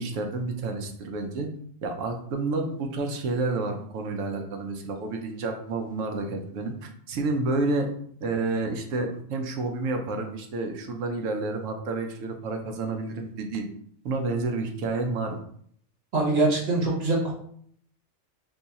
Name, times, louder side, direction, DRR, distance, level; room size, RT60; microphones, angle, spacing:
voice 1, 0.0-1.5 1.8-7.9 8.2-13.7 14.0-15.4, right 3 dB, 80° right, 4 dB, 0.9 m, -30 dB
voice 2, 16.1-17.3, right 2 dB, 55° right, -3 dB, 1.2 m, -23 dB
2.7 x 2.3 x 4.0 m, 0.63 s
omnidirectional pair, 1.3 m